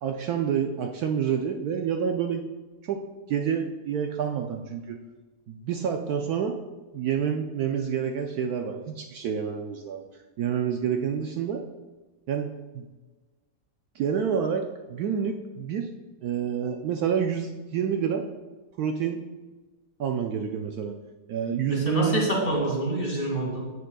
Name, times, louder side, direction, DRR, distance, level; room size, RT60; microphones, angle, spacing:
voice 1, 0.0-2.4 2.9-5.0 5.5-6.6 6.9-10.0 10.4-11.6 12.3-12.5 12.7-12.8 14.0-15.9 16.2-18.2 18.8-19.2 20.0-20.9 21.3-22.2 22.6-23.0, right 7 dB, 80° right, 4 dB, 0.8 m, -28 dB
voice 2, 21.7-23.6, right 1 dB, 25° left, -3 dB, 2.3 m, -26 dB
9.4 x 9.1 x 2.3 m, 1.2 s
omnidirectional pair, 2.2 m